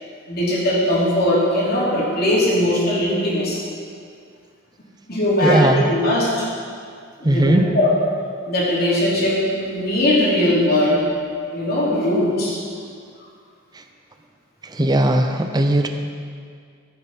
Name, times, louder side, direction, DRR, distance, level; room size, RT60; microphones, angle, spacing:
voice 1, 0.3-3.6 5.1-6.5 7.2-7.9 8.5-11.0 11.5-12.6, left 1 dB, 45° left, -6 dB, 3.1 m, -19 dB
voice 2, 5.4-5.9 7.2-7.7 14.6-15.9, right 1 dB, 20° right, 5 dB, 0.6 m, -18 dB
14.5 x 8.7 x 4.3 m, 2.2 s
head